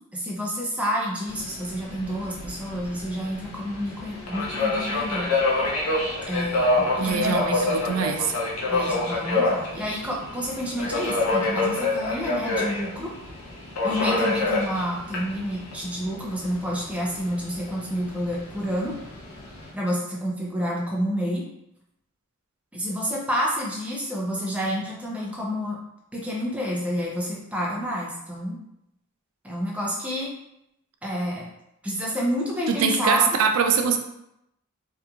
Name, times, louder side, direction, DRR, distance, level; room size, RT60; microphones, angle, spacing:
voice 1, 0.1-5.3 6.3-7.8 8.7-13.1 13.8-19.0 19.7-21.5 22.7-25.8 26.1-28.6 29.4-30.3 31.0-31.5 31.8-33.3, equal, 5° right, -4 dB, 0.5 m, -29 dB
Subway metro underground, 1.3-19.7, left 2 dB, 90° left, 0.7 m, -28 dB
voice 2, 7.0-8.4 32.7-34.0, right 6 dB, 80° right, 6 dB, 0.4 m, -23 dB
2.9 x 2.5 x 2.3 m, 0.82 s
head